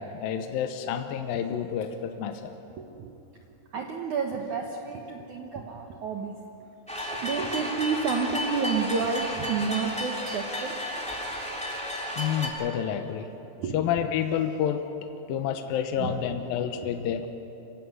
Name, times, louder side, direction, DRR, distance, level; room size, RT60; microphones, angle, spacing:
voice 1, 0.0-2.6 12.2-13.3 13.7-14.8 15.3-17.3, left 9 dB, 75° left, 6 dB, 2.3 m, -29 dB
voice 2, 2.8-3.1 3.7-6.4 7.1-10.7 13.6-13.7 16.0-16.2 16.8-16.9, right 5 dB, 70° right, 2 dB, 1.8 m, -30 dB
sound 1, 6.9-12.5, left 1 dB, ahead, 2.1 m, -33 dB
24.5 x 16.0 x 9.5 m, 2.8 s
omnidirectional pair, 5.3 m